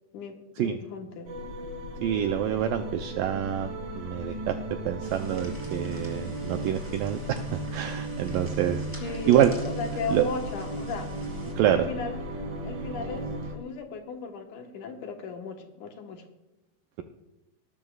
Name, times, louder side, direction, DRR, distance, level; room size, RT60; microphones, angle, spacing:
voice 1, 0.1-1.3 9.0-11.1 11.7-12.2 12.6-16.2, left 5 dB, 65° left, 3 dB, 2.4 m, -36 dB
sound 1, 1.3-13.5, right 2 dB, 65° right, 3.8 m, -36 dB
voice 2, 2.0-4.6 4.9-9.5 10.1-10.3 11.6-11.9, right 10 dB, 85° right, 6 dB, 2.0 m, -26 dB
sound 2, 5.0-11.5, equal, 5° right, 3.3 m, -48 dB
20.0 x 12.5 x 2.4 m, 0.96 s
omnidirectional pair, 4.6 m